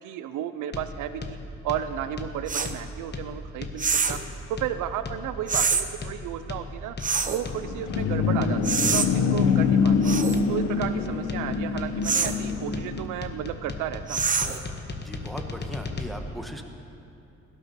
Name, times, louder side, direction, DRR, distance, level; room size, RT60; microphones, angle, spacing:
voice 1, 0.0-1.4 1.6-4.2 4.5-7.0 7.2-10.1 10.5-14.3, right 11 dB, 85° right, 11 dB, 0.6 m, -33 dB
sound 1, 0.7-16.1, left 4 dB, 35° left, 1.2 m, -37 dB
sound 2, 2.5-2.7 3.8-4.2 5.5-5.8 7.0-7.4 8.6-9.1 10.0-10.4 12.0-12.4 14.1-14.6, right 5 dB, 25° right, 0.7 m, -25 dB
sound 3, 7.5-13.1, left 5 dB, 80° left, 1.0 m, -25 dB
voice 2, 15.0-16.7, equal, ahead, 3 dB, 1.3 m, -38 dB
17.0 x 12.0 x 4.3 m, 2.7 s
cardioid pair, 90°, 30 cm